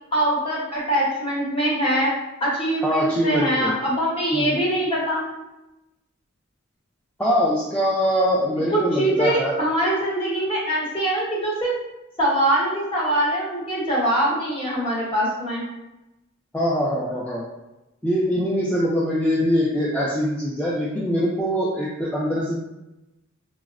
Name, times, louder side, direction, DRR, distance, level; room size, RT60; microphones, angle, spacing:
voice 1, 0.1-2.1 2.4-5.2 8.7-11.7 12.2-15.6, right 1 dB, 25° left, -6 dB, 1.0 m, -23 dB
voice 2, 2.8-3.8 4.3-4.6 7.2-9.6 16.5-17.4 18.0-22.6, equal, 5° left, -6 dB, 0.3 m, -23 dB
4.0 x 2.0 x 2.4 m, 0.96 s
head